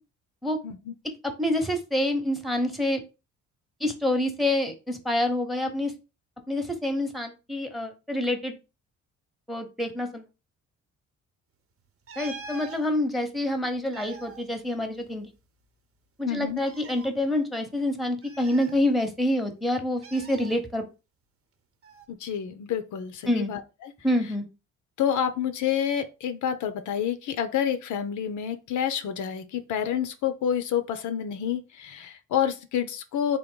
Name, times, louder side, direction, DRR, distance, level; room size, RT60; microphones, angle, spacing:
voice 1, 1.2-3.0 3.8-5.9 6.5-8.5 9.5-10.2 12.2-15.3 16.2-20.8 23.3-23.5 24.0-24.4, left 1 dB, ahead, 0.8 m, -27 dB
sound 1, 12.1-12.8 13.7-15.4 15.6-15.7 16.6-17.1 18.2-19.3 20.0-20.6 21.8-22.1, right 4 dB, 50° right, 0.8 m, -44 dB
voice 2, 16.3-16.6 22.1-23.9 25.0-33.4, left 9 dB, 75° left, 0.6 m, -28 dB
3.7 x 2.5 x 3.7 m
cardioid pair, 90°, 30 cm